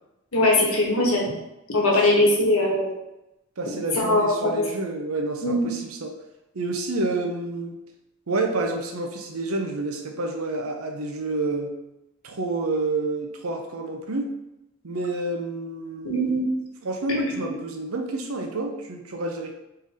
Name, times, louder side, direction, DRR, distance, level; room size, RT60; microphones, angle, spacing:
voice 1, 0.3-1.3 1.7-2.9 3.9-4.6 5.4-5.7 16.0-16.4 17.1-17.5, left 1 dB, 80° left, -1 dB, 1.2 m, -21 dB
voice 2, 3.6-6.2 6.5-7.8 8.3-11.7 12.2-14.3 14.8-16.5 16.8-19.5, right 2 dB, 75° right, 4 dB, 0.7 m, -29 dB
3.8 x 3.3 x 4.1 m, 0.92 s
head